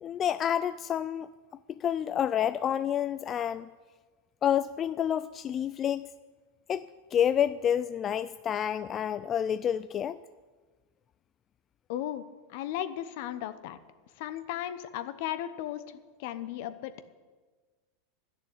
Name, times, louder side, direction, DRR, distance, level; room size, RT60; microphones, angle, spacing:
voice 1, 0.0-1.3 1.8-3.7 4.4-6.1 6.7-10.2, left 9 dB, 35° left, 13 dB, 0.3 m, -29 dB
voice 2, 11.9-12.2 12.5-13.8 14.2-15.8 16.2-16.9, left 12 dB, 65° left, 12 dB, 0.9 m, -35 dB
11.5 x 6.9 x 9.7 m, 1.4 s
hypercardioid pair, 105°, 0 cm